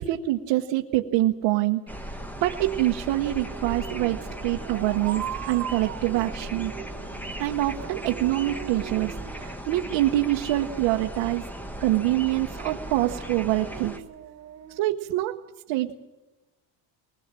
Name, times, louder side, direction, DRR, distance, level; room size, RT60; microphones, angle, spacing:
voice 1, 0.0-1.8 2.4-6.7 7.4-11.4 11.8-13.9 14.7-15.4 15.7-16.0, right 16 dB, 75° right, 2 dB, 1.2 m, -25 dB
sound 1, 1.9-14.0, equal, 5° left, 1.0 m, -37 dB
sound 2, 3.1-14.8, right 10 dB, 35° right, 1.1 m, -42 dB
22.0 x 20.5 x 7.5 m, 1.1 s
cardioid pair, 165°, 45 cm